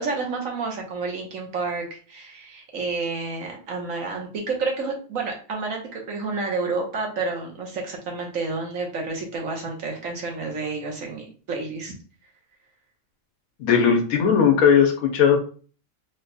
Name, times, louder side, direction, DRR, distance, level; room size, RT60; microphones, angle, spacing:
voice 1, 0.0-11.9, right 3 dB, 70° right, 1 dB, 1.5 m, -30 dB
voice 2, 13.6-15.4, left 7 dB, 85° left, 2 dB, 1.2 m, -18 dB
4.0 x 4.0 x 2.2 m, 0.39 s
omnidirectional pair, 1.4 m